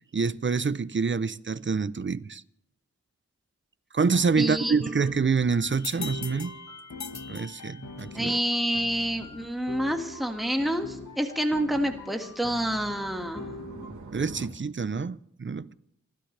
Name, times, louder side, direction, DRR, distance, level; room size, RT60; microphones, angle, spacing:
voice 1, 0.1-2.4 3.9-6.5 7.3-8.4 14.1-15.7, right 5 dB, 40° right, 0.6 m, -27 dB
sound 1, 4.0-13.9, left 3 dB, 85° left, 1.6 m, -43 dB
voice 2, 4.4-4.8 8.1-13.5, equal, ahead, 1.8 m, -28 dB
sound 2, 5.7-8.3, left 6 dB, 65° left, 0.7 m, -41 dB
sound 3, 8.9-14.5, right 2 dB, 80° right, 2.3 m, -48 dB
30.0 x 13.0 x 3.3 m
wide cardioid pair, 60°, 30 cm